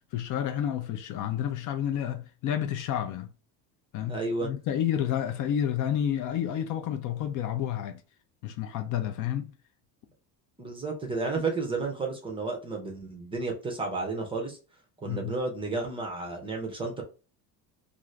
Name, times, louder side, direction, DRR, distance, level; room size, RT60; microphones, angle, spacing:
voice 1, 0.1-3.3 3.9-8.0 8.4-9.5 15.1-15.3, left 10 dB, 50° left, 0.4 m, -30 dB
voice 2, 4.1-4.5 10.6-14.6 15.0-17.0, right 3 dB, 15° right, 0.5 m, -32 dB
2.5 x 2.5 x 3.1 m
cardioid pair, 155°, 41 cm